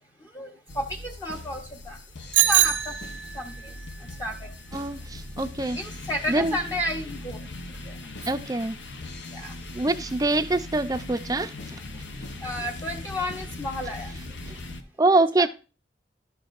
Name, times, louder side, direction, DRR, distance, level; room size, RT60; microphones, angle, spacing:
voice 1, 0.3-2.0 2.5-2.9 3.3-3.7 4.2-4.5 5.7-7.4 7.9-8.0 8.2-8.3 9.3-9.5 12.4-14.1 15.4-15.5, equal, 20° left, 0.7 m, -32 dB
sound 1, 0.7-14.8, left 2 dB, 85° left, 0.9 m, -39 dB
Bicycle bell, 2.3-3.6, right 12 dB, 85° right, 0.8 m, -22 dB
voice 2, 4.7-5.8 6.3-6.6 8.3-8.8 9.8-11.5 15.0-15.5, right 2 dB, 20° right, 0.5 m, -24 dB
11.5 x 7.0 x 2.5 m
head